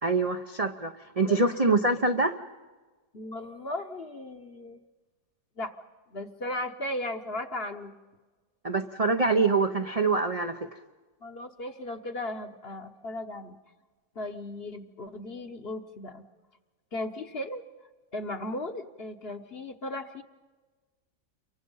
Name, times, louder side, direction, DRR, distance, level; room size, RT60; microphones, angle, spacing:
voice 1, 0.0-2.4 8.6-10.7, right 3 dB, 40° right, 6 dB, 0.5 m, -25 dB
voice 2, 3.1-4.8 5.6-5.7 6.1-7.9 11.2-13.6 14.1-16.2 16.9-17.6 18.1-20.2, left 1 dB, 40° left, 7 dB, 1.1 m, -36 dB
29.0 x 23.5 x 5.5 m, 1.3 s
omnidirectional pair, 1.8 m